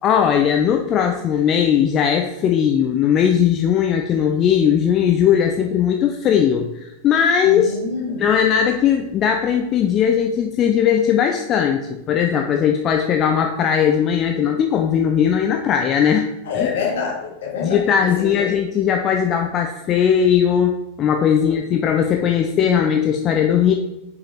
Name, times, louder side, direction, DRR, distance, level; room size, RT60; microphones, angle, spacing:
voice 1, 0.0-7.8 8.2-16.3 16.5-16.8 17.6-23.7, left 8 dB, 30° left, 4 dB, 0.5 m, -18 dB
voice 2, 7.4-8.2 16.5-17.8 18.2-18.6 21.4-21.6, left 5 dB, 60° left, -2 dB, 2.1 m, -26 dB
7.2 x 5.1 x 4.1 m, 0.90 s
figure-of-eight pair, 90°, 0 cm